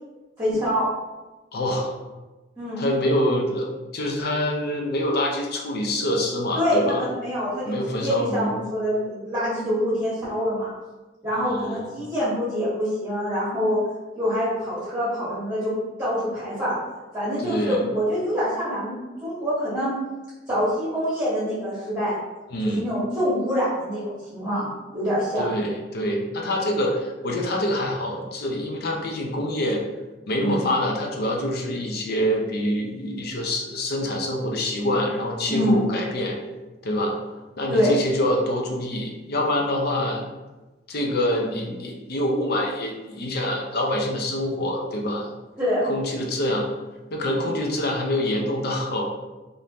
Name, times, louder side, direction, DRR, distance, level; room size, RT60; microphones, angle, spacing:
voice 1, 0.4-0.9 2.6-2.8 6.5-10.7 11.2-13.8 14.2-15.7 16.0-16.8 17.1-19.9 20.5-22.1 22.7-24.7 24.9-25.5 30.4-30.6 35.5-35.8 37.7-37.9 45.6-45.8, equal, 15° right, -12 dB, 1.2 m, -25 dB
voice 2, 1.5-1.9 2.8-7.0 7.7-8.5 11.4-11.8 17.4-17.8 22.5-22.8 25.4-29.8 30.3-36.4 36.8-37.2 37.6-40.2 40.9-45.3 45.8-46.7 47.1-49.0, left 1 dB, 60° left, 0 dB, 0.6 m, -25 dB
3.5 x 2.6 x 2.8 m, 1.1 s
head